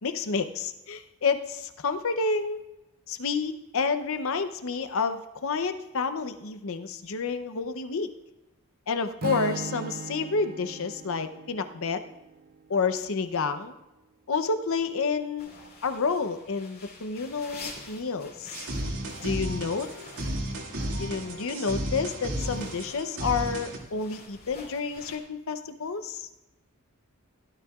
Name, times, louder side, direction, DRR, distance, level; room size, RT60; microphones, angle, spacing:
voice 1, 0.0-2.6 3.1-8.1 8.9-12.0 12.7-13.7 14.3-15.5 15.8-18.6 19.2-19.9 21.0-26.3, left 4 dB, 65° left, 9 dB, 0.7 m, -29 dB
Strum, 9.2-13.4, right 4 dB, 40° right, 0.4 m, -39 dB
sound 1, 15.4-25.2, left 3 dB, 45° left, 2.8 m, -48 dB
sound 2, 18.5-23.8, right 1 dB, 75° right, 2.2 m, -33 dB
16.0 x 12.5 x 2.4 m, 0.97 s
head